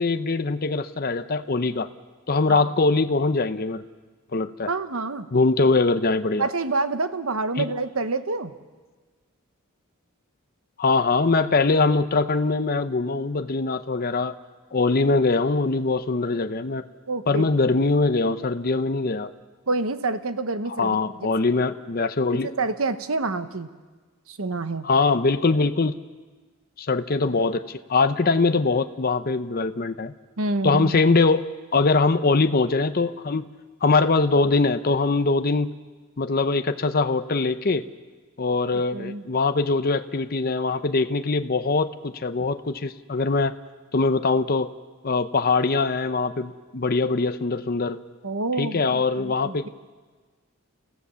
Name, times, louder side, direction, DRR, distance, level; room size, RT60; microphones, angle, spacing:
voice 1, 0.0-1.9 2.3-3.8 4.3-4.7 5.3-6.5 7.6-7.7 10.8-14.3 14.7-16.9 17.3-19.3 20.8-22.5 24.8-25.9 26.8-30.1 30.6-31.4 31.7-33.5 33.8-35.7 36.2-37.8 38.4-43.5 43.9-44.7 45.0-48.0 48.6-49.7, left 3 dB, 45° left, 9 dB, 0.7 m, -22 dB
voice 2, 4.7-5.3 6.4-8.5 17.1-17.5 19.7-21.0 22.6-23.7 24.3-24.9 30.4-31.0 38.9-39.2 48.2-49.7, right 3 dB, 75° right, 10 dB, 1.1 m, -27 dB
30.0 x 15.5 x 7.0 m, 1.4 s
head